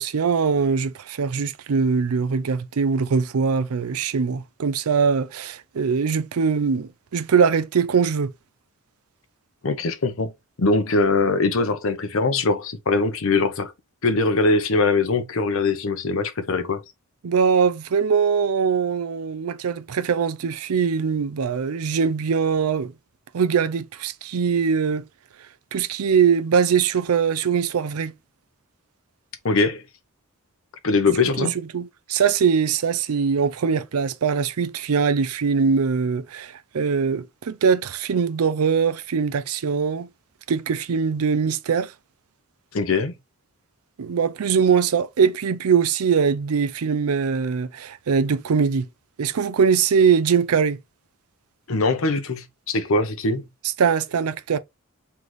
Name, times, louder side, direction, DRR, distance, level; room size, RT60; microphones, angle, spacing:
voice 1, 0.0-8.3 17.2-22.9 23.3-25.0 25.7-28.1 31.4-40.1 40.5-41.9 44.0-48.9 49.2-50.8 53.8-54.6, right 6 dB, 90° right, 0.5 m, -22 dB
voice 2, 9.6-10.3 10.6-13.7 14.0-16.8 29.4-29.8 30.8-31.5 42.7-43.1 51.7-53.5, left 3 dB, 65° left, 0.8 m, -22 dB
3.4 x 3.1 x 3.8 m
head